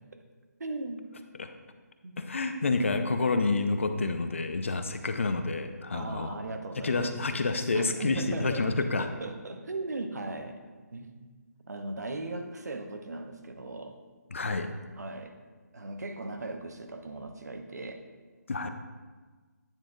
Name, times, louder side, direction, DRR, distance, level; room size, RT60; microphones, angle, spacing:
voice 1, 0.6-1.1 2.0-2.2 5.9-7.1 7.7-10.6 10.9-11.3 11.7-14.0 15.0-15.3 15.7-18.0, right 2 dB, 70° right, 6 dB, 0.9 m, -38 dB
voice 2, 2.2-6.3 6.8-9.1 14.3-14.7 18.5-18.7, left 3 dB, 45° left, 8 dB, 0.5 m, -29 dB
9.1 x 4.5 x 3.8 m, 1.4 s
hypercardioid pair, 175°, 9 cm